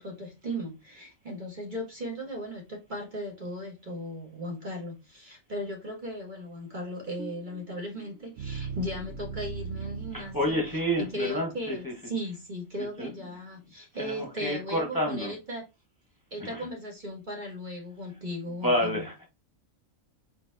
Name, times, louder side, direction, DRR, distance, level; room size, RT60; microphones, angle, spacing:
voice 1, 0.0-10.6 11.0-15.6 16.3-19.0, equal, 35° right, 1.6 m, -37 dB
sound 1, 7.2-11.3, right 5 dB, 70° right, 1.0 m, -39 dB
voice 2, 10.1-11.9 13.0-13.1 14.0-15.3 16.4-16.7 18.6-19.3, equal, 15° left, 1.2 m, -29 dB
4.5 x 4.3 x 2.7 m
omnidirectional pair, 1.4 m